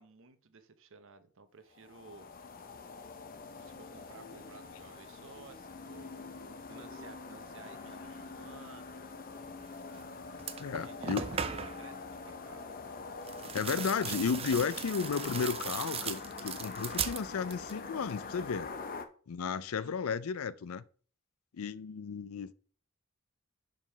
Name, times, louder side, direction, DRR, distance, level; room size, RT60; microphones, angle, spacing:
voice 1, 0.0-2.3 3.6-6.4 6.7-9.0 10.7-12.7 19.8-20.2, right 4 dB, 65° right, 0.9 m, -55 dB
sound 1, 1.7-19.0, left 4 dB, 40° left, 0.7 m, -45 dB
sound 2, 9.9-10.1 10.4-11.9 13.2-17.8 18.1-18.7, right 7 dB, 25° right, 0.5 m, -39 dB
voice 2, 10.6-11.2 13.5-18.7 19.3-20.8 21.5-22.5, left 6 dB, 70° left, 0.5 m, -33 dB
5.6 x 5.1 x 5.5 m
head